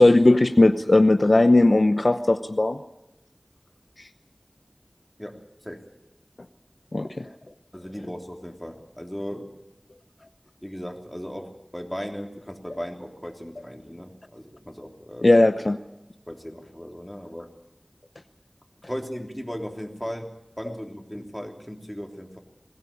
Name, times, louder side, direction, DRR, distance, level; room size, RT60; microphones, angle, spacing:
voice 1, 0.0-2.8 6.9-7.3 15.2-15.8, left 2 dB, 65° left, 8 dB, 0.8 m, -17 dB
voice 2, 5.2-5.9 7.7-9.5 10.6-15.5 16.3-17.5 18.9-22.4, equal, 5° left, 2 dB, 3.3 m, -37 dB
21.5 x 16.5 x 8.7 m, 0.93 s
wide cardioid pair, 45°, 0 cm